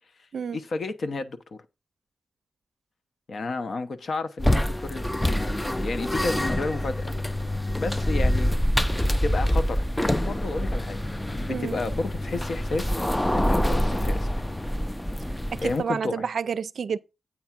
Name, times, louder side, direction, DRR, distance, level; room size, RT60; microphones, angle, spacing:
voice 1, 0.5-1.6 3.3-7.1 7.8-8.5 9.2-14.5 15.6-16.3, left 3 dB, 70° left, 0.9 m, -32 dB
sound 1, 4.4-15.8, equal, 10° left, 0.4 m, -26 dB
voice 2, 15.5-17.0, right 6 dB, 80° right, 0.4 m, -29 dB
8.5 x 3.5 x 5.9 m
cardioid pair, 75°, 0 cm